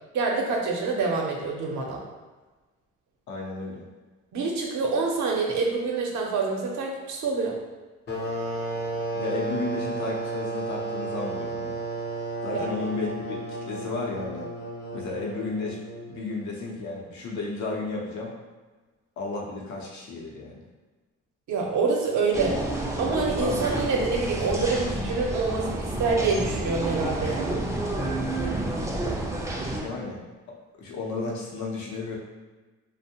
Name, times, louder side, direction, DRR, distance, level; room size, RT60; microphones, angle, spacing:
voice 1, 0.1-2.0 4.3-7.6 12.5-12.8 21.5-22.6 23.0-27.6, right 4 dB, 65° right, 0 dB, 0.6 m, -26 dB
voice 2, 3.3-3.8 9.1-11.8 12.4-14.5 14.9-15.8 16.1-18.3 19.2-20.6 29.7-30.2 30.8-32.2, left 3 dB, 70° left, -2 dB, 0.7 m, -33 dB
sound 1, 8.1-16.4, right 2 dB, 35° left, 0.6 m, -33 dB
sound 2, 22.3-29.8, right 1 dB, 10° right, 0.4 m, -29 dB
2.5 x 2.1 x 2.8 m, 1.3 s
cardioid pair, 90°, 30 cm